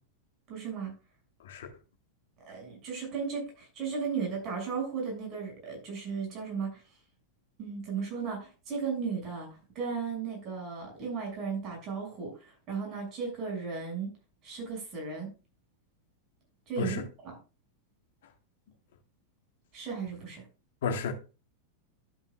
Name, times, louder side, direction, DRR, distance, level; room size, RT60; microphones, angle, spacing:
voice 1, 0.5-0.9 2.4-6.8 7.6-9.5 9.8-14.1 14.4-15.3 16.7-17.4 19.7-20.4, right 5 dB, 35° right, 6.9 m, -35 dB
voice 2, 20.8-21.1, left 5 dB, 60° left, 1.8 m, -32 dB
13.5 x 9.2 x 2.5 m
figure-of-eight pair, 90°, 0 cm